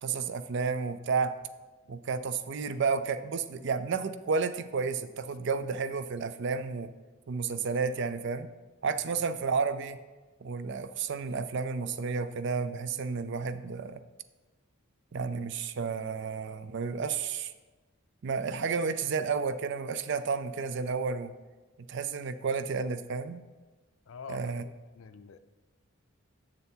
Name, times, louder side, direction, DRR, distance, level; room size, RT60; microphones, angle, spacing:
voice 1, 0.0-1.4 1.9-6.9 7.3-8.5 8.8-10.0 10.4-14.0 15.1-17.5 18.2-21.3 21.9-23.4 24.3-24.6, right 5 dB, 60° right, 12 dB, 0.4 m, -31 dB
voice 2, 24.1-24.5 25.0-25.4, left 5 dB, 75° left, 11 dB, 0.5 m, -46 dB
6.9 x 6.7 x 4.5 m, 1.2 s
head